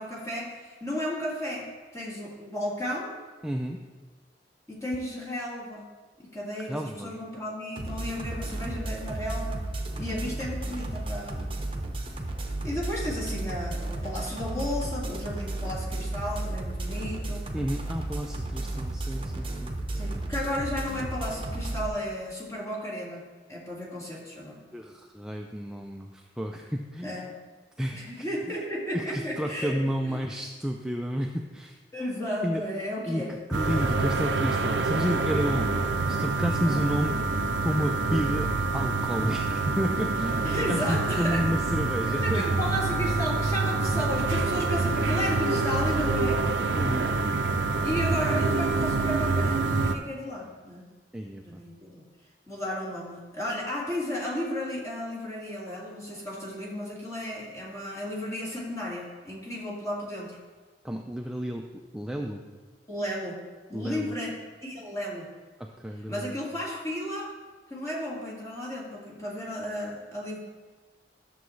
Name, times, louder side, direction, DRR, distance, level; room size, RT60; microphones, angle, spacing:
voice 1, 0.0-1.7 1.9-3.1 4.7-5.9 6.2-9.6 10.0-11.6 12.6-17.5 19.9-23.2 23.5-24.6 27.0-27.3 27.9-30.2 31.9-33.3 36.6-36.8 40.4-41.4 42.1-46.4 47.8-50.9 51.4-52.0 52.5-60.4 62.9-63.4 63.7-64.4 64.6-65.3 66.1-67.3 67.7-70.4, left 1 dB, 20° left, -5 dB, 2.0 m, -33 dB
voice 2, 3.4-3.8 6.7-7.1 17.5-19.8 24.7-27.2 27.8-28.3 28.9-31.8 32.4-32.6 33.1-33.2 33.5-35.7 36.1-37.2 37.6-42.4 46.7-47.1 51.1-51.6 60.8-61.7 61.9-62.4 63.7-64.1 65.6-66.4, equal, 5° right, 2 dB, 0.4 m, -31 dB
sound 1, 7.8-21.9, right 2 dB, 30° right, 0.9 m, -33 dB
sound 2, 33.5-50.0, right 3 dB, 80° right, 0.5 m, -26 dB
11.5 x 6.9 x 3.2 m, 1.3 s
head